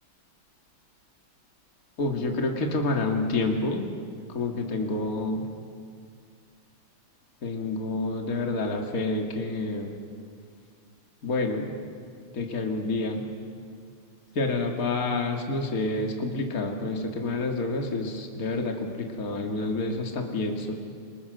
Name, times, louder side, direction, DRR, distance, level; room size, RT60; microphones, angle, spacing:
voice 1, 2.0-3.9 4.3-5.5 7.4-9.9 11.2-11.7 12.3-13.2 14.4-20.8, left 2 dB, 40° left, 2 dB, 2.5 m, -28 dB
28.5 x 24.5 x 6.7 m, 2.1 s
omnidirectional pair, 2.4 m